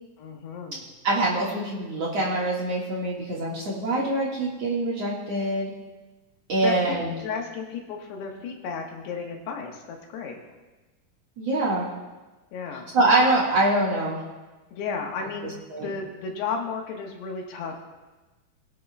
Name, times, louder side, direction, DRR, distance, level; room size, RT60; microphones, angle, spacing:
voice 1, 0.2-0.8 6.6-6.7 7.2-10.4 12.5-12.9 14.7-15.6 15.8-17.7, left 5 dB, 85° left, 1 dB, 3.5 m, -33 dB
voice 2, 1.0-5.7 6.5-7.1 11.4-11.9 12.9-14.2 15.7-15.9, right 2 dB, 50° right, -4 dB, 2.3 m, -24 dB
22.0 x 10.5 x 2.3 m, 1.2 s
omnidirectional pair, 4.6 m